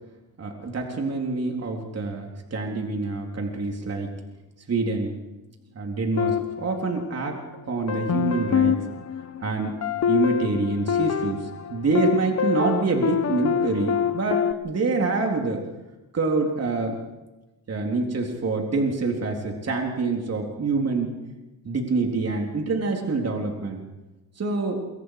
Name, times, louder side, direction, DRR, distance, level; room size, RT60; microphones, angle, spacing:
voice 1, 0.4-4.1 4.7-5.2 5.8-8.8 9.4-9.8 10.1-15.6 16.1-17.0 17.7-21.1 21.6-23.8 24.4-24.8, right 3 dB, 40° right, 1 dB, 3.9 m, -26 dB
Beyond(Mod), 6.2-7.4 7.9-14.5, left 8 dB, 40° left, 1.5 m, -26 dB
27.5 x 24.5 x 5.0 m, 1.1 s
cardioid pair, 85°, 38 cm